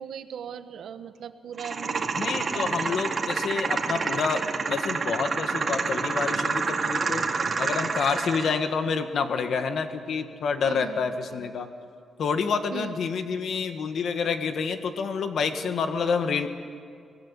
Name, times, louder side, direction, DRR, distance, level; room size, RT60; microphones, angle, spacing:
voice 1, 0.0-3.0 10.6-11.5 12.7-13.0, right 8 dB, 80° right, 9 dB, 1.3 m, -39 dB
sound 1, 1.6-8.6, right 4 dB, 40° right, 2.2 m, -28 dB
voice 2, 2.2-4.4 4.7-7.2 7.6-11.7 12.2-16.5, left 5 dB, 65° left, 7 dB, 1.7 m, -28 dB
24.0 x 18.5 x 9.8 m, 2.2 s
wide cardioid pair, 130°, 0 cm